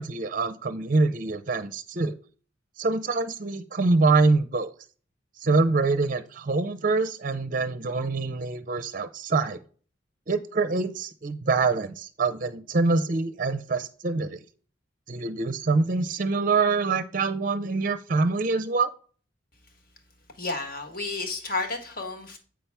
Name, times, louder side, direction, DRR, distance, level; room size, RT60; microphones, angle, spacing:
voice 1, 0.0-2.2 2.8-4.7 5.4-9.6 10.3-14.4 15.1-18.9, right 3 dB, 45° right, 11 dB, 0.5 m, -25 dB
voice 2, 20.3-22.4, left 3 dB, 45° left, 5 dB, 1.4 m, -31 dB
7.7 x 5.7 x 3.3 m, 0.41 s
head